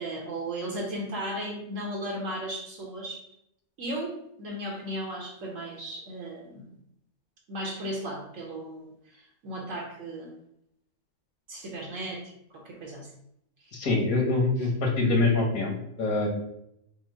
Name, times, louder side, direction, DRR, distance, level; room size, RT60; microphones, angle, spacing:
voice 1, 0.0-3.2 3.8-6.6 7.5-10.3 11.5-13.1 13.6-13.7, right 1 dB, 70° right, -2 dB, 1.3 m, -36 dB
voice 2, 13.7-15.7 16.0-16.3, left 3 dB, 90° left, 0 dB, 1.6 m, -24 dB
5.1 x 2.0 x 4.7 m, 0.76 s
omnidirectional pair, 1.4 m